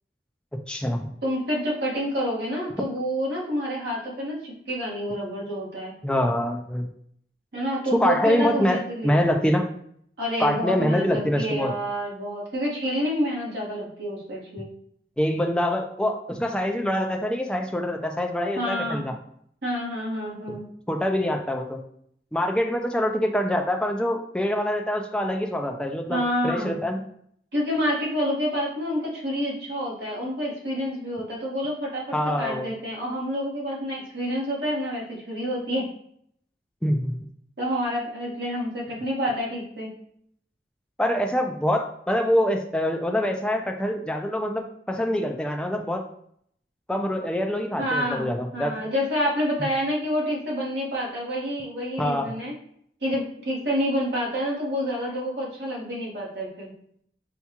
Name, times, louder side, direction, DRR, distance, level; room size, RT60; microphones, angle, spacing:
voice 1, 0.7-1.1 6.0-6.9 7.9-9.7 10.4-11.7 15.2-19.1 20.5-20.6 20.9-21.8 22.3-27.0 32.1-32.7 36.8-37.2 41.0-46.0 46.9-48.7 52.0-52.3, left 1 dB, 5° left, 3 dB, 0.3 m, -25 dB
voice 2, 1.2-5.9 7.5-9.1 10.2-14.7 18.5-19.0 19.6-20.7 26.1-26.7 27.5-32.0 32.4-35.8 37.6-39.9 47.8-48.3 48.5-52.5 53.0-56.7, equal, 70° right, -3 dB, 1.3 m, -28 dB
5.7 x 2.3 x 2.8 m, 0.68 s
head